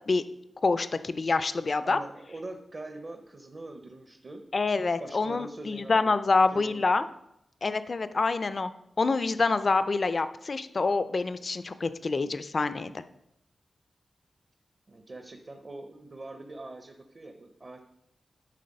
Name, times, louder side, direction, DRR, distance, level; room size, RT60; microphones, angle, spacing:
voice 1, 0.6-2.0 4.5-7.0 7.6-8.7 9.0-13.0, left 3 dB, 40° left, 12 dB, 0.4 m, -26 dB
voice 2, 1.8-4.4 5.0-6.1 6.5-7.0 14.9-17.8, right 2 dB, 35° right, 5 dB, 0.7 m, -43 dB
11.0 x 4.2 x 5.3 m, 0.83 s
wide cardioid pair, 165°, 0 cm